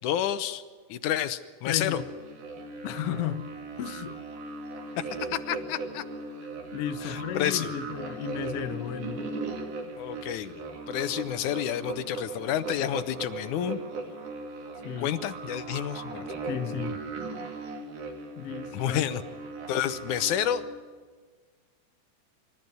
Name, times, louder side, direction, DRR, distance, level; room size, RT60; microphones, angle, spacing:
voice 1, 0.0-0.6 0.9-2.0 5.0-5.1 5.3-6.0 7.0-7.7 10.0-10.5 10.9-13.8 15.0-16.3 18.7-19.2 19.7-20.6, left 10 dB, 85° left, 2.4 m, -29 dB
voice 2, 1.7-2.0 2.8-3.5 3.8-4.2 6.7-9.3 14.8-15.2 16.4-17.0 18.4-19.1, left 11 dB, 65° left, 1.8 m, -34 dB
sound 1, 1.9-20.7, right 3 dB, 80° right, 4.0 m, -38 dB
26.0 x 13.5 x 9.4 m
omnidirectional pair, 3.4 m